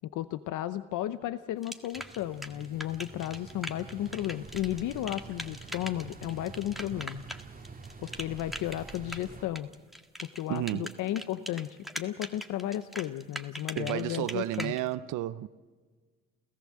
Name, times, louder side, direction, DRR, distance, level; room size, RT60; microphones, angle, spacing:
voice 1, 0.0-7.2 8.0-9.7 10.2-14.7, left 13 dB, 85° left, 0.7 m, -34 dB
sound 1, 1.6-14.8, equal, ahead, 1.7 m, -41 dB
sound 2, 1.9-9.4, right 4 dB, 30° right, 2.1 m, -47 dB
voice 2, 10.5-10.9 13.8-15.5, right 15 dB, 90° right, 0.6 m, -32 dB
29.5 x 15.5 x 7.5 m
cardioid pair, 90°, 30 cm